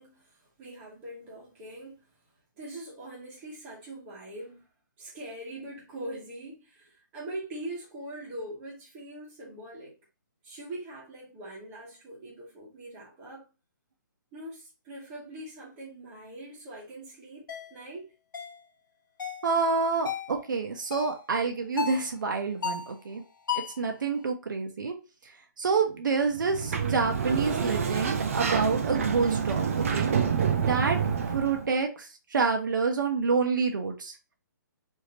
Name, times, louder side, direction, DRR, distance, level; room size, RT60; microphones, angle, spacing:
voice 1, 0.0-2.0 2.6-4.6 5.0-10.0 10.4-13.5 14.3-18.1, right 1 dB, 15° right, 1.1 m, -42 dB
sound 1, 17.5-17.7 18.3-18.6 19.2-19.5 20.1-20.3 20.9-21.2 21.8-22.1 22.6-23.0 23.5-23.8, left 7 dB, 80° left, 0.9 m, -33 dB
voice 2, 19.4-23.2 23.8-24.9 25.6-30.1 30.6-31.0 31.3-34.1, right 4 dB, 70° right, 0.8 m, -28 dB
Sliding door, 26.3-31.7, right 7 dB, 45° right, 0.5 m, -28 dB
3.3 x 2.7 x 2.8 m
hypercardioid pair, 170°, 11 cm